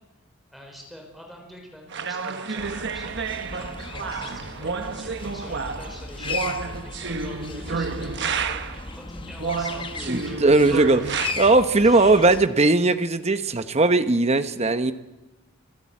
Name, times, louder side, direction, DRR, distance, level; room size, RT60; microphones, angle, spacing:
voice 1, 0.5-11.1 11.8-12.3, equal, ahead, 1 dB, 4.9 m, -45 dB
sound 1, 1.9-8.9 9.4-11.3, right 4 dB, 55° right, 1.2 m, -30 dB
sound 2, 2.0-7.7, right 3 dB, 85° left, 5.5 m, -52 dB
sound 3, 2.6-12.5, left 3 dB, 25° left, 1.1 m, -36 dB
voice 2, 10.1-11.0 11.4-14.9, right 2 dB, 30° right, 10 dB, 0.9 m, -19 dB
26.0 x 13.5 x 8.6 m, 1.1 s
head